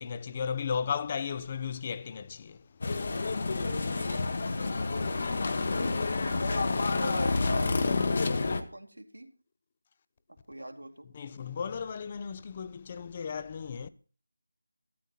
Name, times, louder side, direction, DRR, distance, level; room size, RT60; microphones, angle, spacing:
voice 1, 0.0-2.6 11.1-13.9, left 6 dB, 25° left, 0.7 m, -35 dB
sound 1, 2.8-8.6, left 3 dB, 45° left, 1.3 m, -29 dB
voice 2, 3.5-7.8 8.5-9.3 10.5-11.1, right 1 dB, 85° right, 2.6 m, -43 dB
13.5 x 12.5 x 4.2 m
figure-of-eight pair, 165°, 0 cm